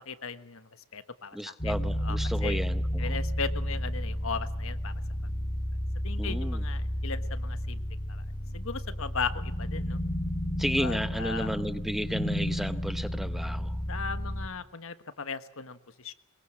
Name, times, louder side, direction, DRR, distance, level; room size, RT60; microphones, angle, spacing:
voice 1, 0.1-1.7 2.0-2.6 3.0-4.9 6.0-7.8 8.1-8.2 8.5-10.0 10.8-11.6 13.9-16.1, left 5 dB, 65° left, 11 dB, 1.4 m, -37 dB
voice 2, 1.3-3.2 6.2-6.6 10.6-13.8, equal, ahead, 10 dB, 0.8 m, -33 dB
sound 1, 1.6-14.5, equal, 30° left, 2.1 m, -32 dB
22.5 x 22.0 x 7.8 m, 0.95 s
head